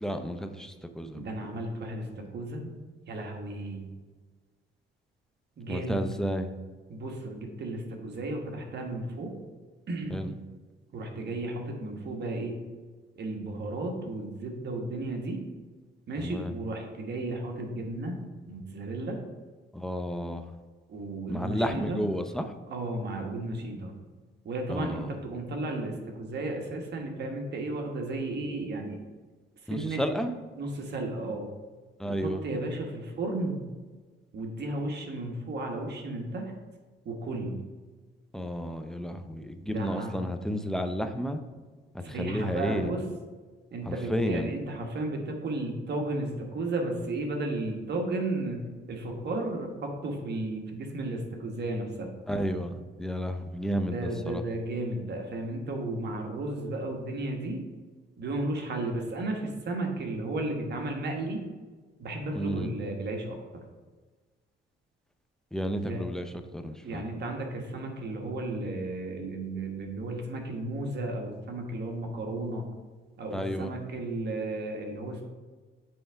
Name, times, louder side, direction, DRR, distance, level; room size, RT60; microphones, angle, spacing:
voice 1, 0.0-1.3 5.7-6.5 10.1-10.3 16.2-16.5 19.7-20.4 21.3-22.4 24.7-25.1 29.7-30.3 32.0-32.4 38.3-41.4 41.9-42.9 43.9-44.5 52.3-54.4 62.3-62.7 65.5-67.0 73.3-73.7, equal, 5° left, 7 dB, 0.6 m, -32 dB
voice 2, 1.1-2.8 3.1-3.9 5.6-6.0 6.9-9.3 9.9-10.2 10.9-12.6 13.2-15.4 16.1-18.2 18.5-19.2 20.9-22.0 22.7-24.0 24.4-29.0 29.7-30.0 30.5-31.5 32.1-33.7 34.3-36.5 37.0-37.6 39.7-40.2 42.0-43.1 43.7-48.6 48.9-52.1 53.9-57.6 58.2-61.4 62.0-63.6 65.8-66.1 66.8-72.7 73.2-75.2, right 2 dB, 55° right, 2 dB, 1.3 m, -34 dB
7.8 x 3.4 x 4.6 m, 1.4 s
cardioid pair, 90°, 20 cm